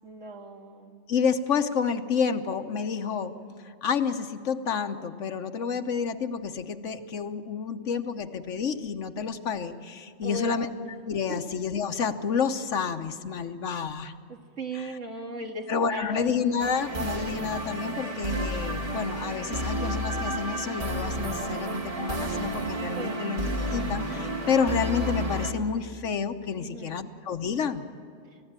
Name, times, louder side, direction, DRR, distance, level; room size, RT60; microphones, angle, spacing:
voice 1, 0.0-1.0 10.2-10.7 11.3-11.4 14.3-16.3 23.0-23.2 26.6-27.0, right 2 dB, 75° right, 2 dB, 2.4 m, -37 dB
voice 2, 1.1-3.4 3.6-14.1 14.7-14.9 15.7-27.8, left 6 dB, 75° left, 9 dB, 1.4 m, -29 dB
sound 1, 16.6-25.5, right 1 dB, 50° right, 2.4 m, -31 dB
30.0 x 15.0 x 8.9 m, 2.3 s
omnidirectional pair, 1.3 m